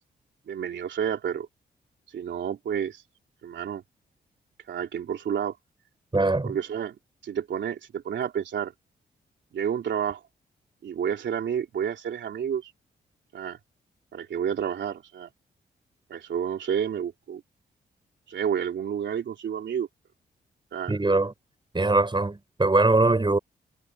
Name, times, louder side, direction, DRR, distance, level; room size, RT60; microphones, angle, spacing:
voice 1, 0.5-1.5 2.1-3.0 3.4-3.8 4.7-5.5 6.4-7.0 7.2-8.7 9.5-10.2 10.8-12.7 13.3-13.6 14.1-15.3 16.1-17.4 18.3-19.9 20.7-20.9, right 8 dB, 75° right, 3.4 m, -30 dB
voice 2, 6.1-6.6 20.9-21.3 21.7-23.4, right 2 dB, 25° right, 6.4 m, -22 dB
cardioid pair, 55°, 19 cm